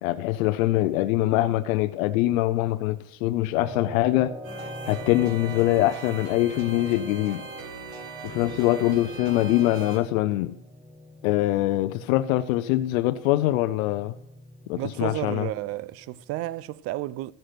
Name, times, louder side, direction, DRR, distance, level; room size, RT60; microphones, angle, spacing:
voice 1, 0.0-4.3 4.9-7.4 8.2-10.5 11.2-14.1 14.7-15.5, left 15 dB, 75° left, 0.7 m, -23 dB
sound 1, 3.6-16.6, left 1 dB, 5° right, 1.3 m, -44 dB
sound 2, 4.4-10.0, right 4 dB, 55° right, 3.8 m, -40 dB
voice 2, 14.8-17.3, right 16 dB, 35° right, 0.4 m, -32 dB
14.5 x 6.5 x 5.8 m
supercardioid pair, 125°, 42 cm